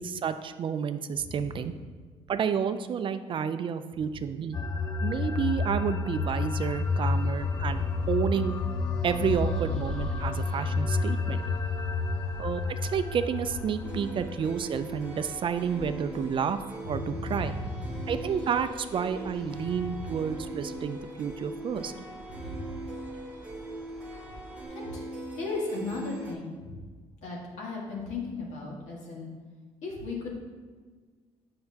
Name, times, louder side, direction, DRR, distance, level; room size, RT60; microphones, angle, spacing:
voice 1, 0.0-1.7 2.3-4.6 5.0-8.5 9.0-11.4 12.4-16.6 16.9-17.5 18.1-22.1, right 7 dB, 45° right, 10 dB, 0.4 m, -30 dB
sound 1, 4.5-15.3, left 3 dB, 30° left, 0.4 m, -30 dB
sound 2, 6.6-24.7, equal, 10° left, 1.8 m, -49 dB
sound 3, 13.8-26.3, right 1 dB, 10° right, 1.0 m, -41 dB
voice 2, 16.9-18.2 19.7-20.1 22.3-22.6 24.7-25.1 25.4-26.7 27.2-29.3 29.8-30.3, left 2 dB, 75° left, -3 dB, 1.8 m, -36 dB
7.6 x 5.7 x 2.8 m, 1.5 s
cardioid pair, 95°, 12 cm